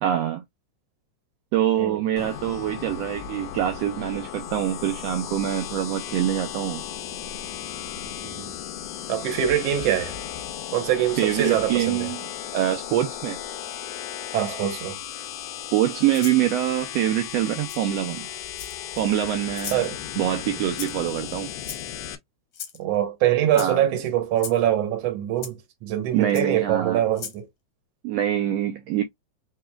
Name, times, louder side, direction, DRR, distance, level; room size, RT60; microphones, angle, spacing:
voice 1, 0.0-0.4 1.5-6.8 11.2-12.2 12.5-13.4 15.7-18.3 19.0-19.9 20.2-21.5 23.6-23.8 26.1-27.0 28.0-29.0, right 11 dB, 80° right, 1.4 m, -25 dB
sound 1, 2.2-22.2, left 10 dB, 80° left, 1.5 m, -35 dB
voice 2, 9.1-10.2 10.7-12.1 14.3-15.0 19.7-20.0 22.8-27.5, right 11 dB, 65° right, 1.9 m, -24 dB
Rattle (instrument), 16.1-16.4 17.7-17.8 18.5-19.0 19.5-19.8 20.7-21.1 21.6-22.1 22.5-22.8 23.5-23.7 24.4-24.6 25.4-25.5 26.3-26.4 27.1-27.4, left 7 dB, 65° left, 1.4 m, -36 dB
4.7 x 3.1 x 2.2 m
omnidirectional pair, 3.4 m